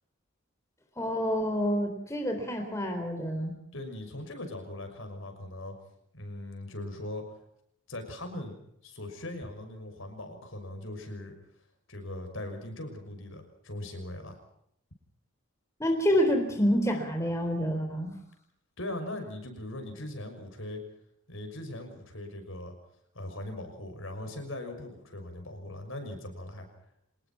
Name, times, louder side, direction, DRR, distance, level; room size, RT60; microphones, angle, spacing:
voice 1, 1.0-3.6 15.8-18.1, equal, 15° left, 4 dB, 4.0 m, -28 dB
voice 2, 3.7-5.7 6.1-7.3 7.9-8.6 8.8-11.3 11.9-14.4 18.8-20.8 21.3-22.7 23.1-26.7, left 1 dB, 60° left, 5 dB, 6.1 m, -40 dB
26.5 x 20.5 x 5.9 m, 0.75 s
head